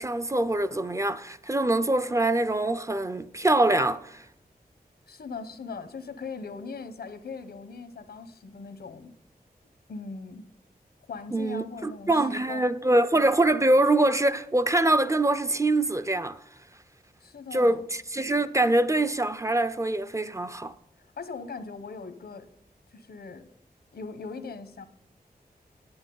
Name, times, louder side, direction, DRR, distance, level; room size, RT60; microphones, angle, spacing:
voice 1, 0.0-4.2 11.3-16.4 17.5-20.7, right 2 dB, 20° right, 0.4 m, -24 dB
voice 2, 5.1-9.2 9.9-10.5 11.1-12.7 17.2-17.9 21.2-22.5 22.9-23.5 23.9-24.9, left 4 dB, 85° left, 0.8 m, -40 dB
9.7 x 8.8 x 3.8 m
wide cardioid pair, 115°, 16 cm